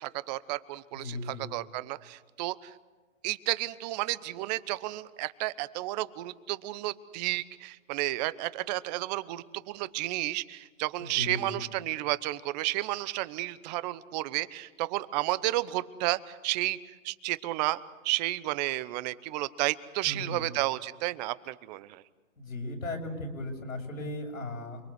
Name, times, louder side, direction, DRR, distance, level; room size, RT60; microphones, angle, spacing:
voice 1, 0.0-1.2 1.5-2.7 3.2-16.8 17.0-17.8 18.0-22.0, right 18 dB, 30° right, 17 dB, 0.9 m, -32 dB
voice 2, 0.9-1.5 11.0-11.6 20.0-20.5 22.4-24.8, left 2 dB, 90° left, 1 dB, 6.8 m, -37 dB
28.5 x 22.0 x 8.2 m, 1.3 s
hypercardioid pair, 130°, 40 cm